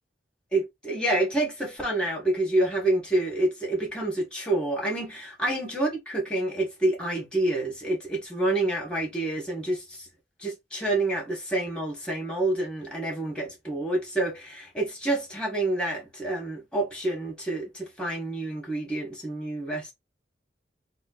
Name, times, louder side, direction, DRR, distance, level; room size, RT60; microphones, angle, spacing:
voice 1, 0.5-10.1 10.4-19.9, right 2 dB, 5° left, 1.5 m, -28 dB
3.7 x 2.2 x 4.0 m
head